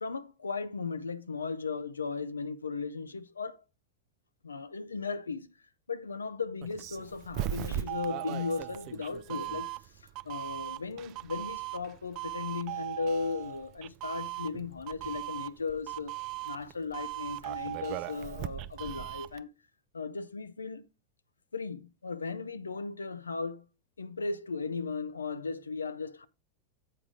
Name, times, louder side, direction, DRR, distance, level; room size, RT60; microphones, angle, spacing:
voice 1, 0.0-3.6 4.4-5.5 5.9-9.7 10.2-16.1 16.4-19.5 19.9-20.8 21.5-23.6 24.0-26.3, left 4 dB, 85° left, 0.5 m, -36 dB
Doorbell, 6.6-19.4, right 14 dB, 45° right, 0.4 m, -38 dB
7.7 x 4.8 x 4.9 m
figure-of-eight pair, 90°, 0 cm